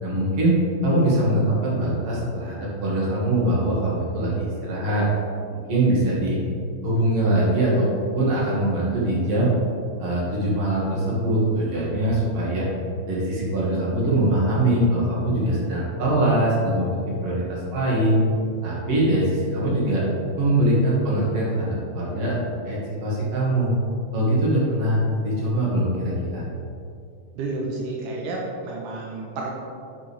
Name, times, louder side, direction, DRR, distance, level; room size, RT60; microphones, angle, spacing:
voice 1, 0.0-5.1 5.7-6.4 6.8-7.9 8.1-9.5 10.0-12.6 13.1-17.0 17.2-18.2 18.6-20.0 20.4-22.4 22.6-23.7 24.1-26.4, right 1 dB, 50° right, -6 dB, 2.7 m, -22 dB
voice 2, 27.4-29.5, right 2 dB, 85° right, -2 dB, 2.4 m, -30 dB
8.8 x 6.3 x 3.4 m, 2.4 s
omnidirectional pair, 3.6 m